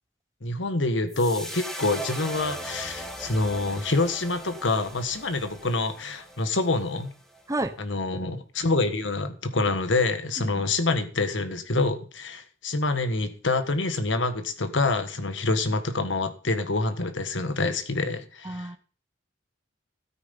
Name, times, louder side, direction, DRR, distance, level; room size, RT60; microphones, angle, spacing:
voice 1, 0.4-7.1 7.8-18.7, left 3 dB, 75° left, 10 dB, 1.6 m, -26 dB
sound 1, 1.1-7.4, right 1 dB, 5° left, 1.8 m, -39 dB
voice 2, 18.4-18.8, right 2 dB, 15° right, 10 dB, 0.8 m, -30 dB
13.0 x 9.4 x 5.4 m, 0.39 s
head